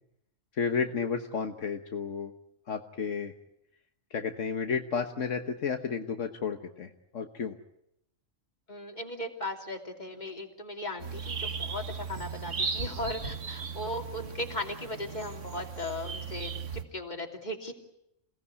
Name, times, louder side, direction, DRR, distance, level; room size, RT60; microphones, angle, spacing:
voice 1, 0.6-2.3 2.7-3.3 4.1-7.5, left 6 dB, 75° left, 5 dB, 1.6 m, -32 dB
voice 2, 8.7-17.7, left 1 dB, 35° left, 3 dB, 3.1 m, -37 dB
sound 1, 11.0-16.8, right 5 dB, 70° right, 1.9 m, -37 dB
28.0 x 18.0 x 9.7 m, 0.79 s
omnidirectional pair, 1.3 m